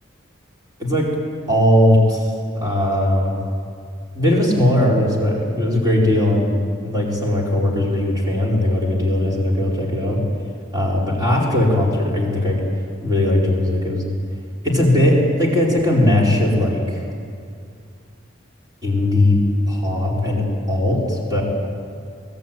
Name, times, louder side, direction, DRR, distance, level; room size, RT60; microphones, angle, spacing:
voice 1, 0.8-1.1 1.5-3.4 4.1-6.5 6.8-10.2 10.7-12.6 13.0-14.0 14.6-17.0 18.8-19.4 19.6-21.4, left 1 dB, 20° right, -3 dB, 4.5 m, -18 dB
24.0 x 19.0 x 9.2 m, 2.3 s
head